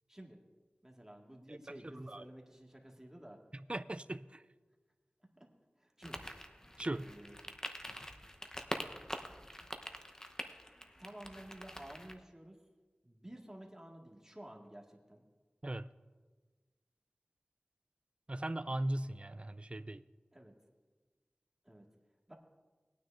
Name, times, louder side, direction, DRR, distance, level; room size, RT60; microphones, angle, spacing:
voice 1, 0.8-3.4 5.8-6.2 6.8-7.4 11.0-12.6 13.0-15.2 20.3-20.5 21.7-21.8 22.3-22.4, right 1 dB, 15° right, 0 dB, 1.8 m, -52 dB
voice 2, 1.5-2.2 3.5-4.4 6.8-7.1 15.6-15.9 18.3-20.0, right 1 dB, 35° right, 13 dB, 0.4 m, -39 dB
sound 1, 6.0-12.1, equal, 20° left, 0.9 m, -45 dB
20.0 x 9.4 x 2.6 m, 1.3 s
wide cardioid pair, 40°, 3 cm